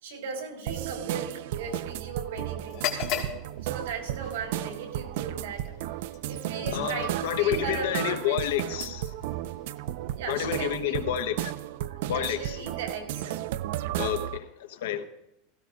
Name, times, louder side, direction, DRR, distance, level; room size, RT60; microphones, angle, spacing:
voice 1, 0.0-2.8 3.6-5.8 6.3-8.9 10.2-11.3 11.9-13.4, right 5 dB, 85° right, 4.0 m, -37 dB
sound 1, 0.7-14.4, right 13 dB, 60° right, 0.3 m, -34 dB
sound 2, 2.6-10.5, left 9 dB, 45° left, 1.8 m, -40 dB
voice 2, 6.6-9.1 10.3-11.5 12.1-12.6 14.0-15.0, left 10 dB, 80° left, 1.1 m, -29 dB
17.0 x 16.0 x 2.5 m
supercardioid pair, 170°, 0 cm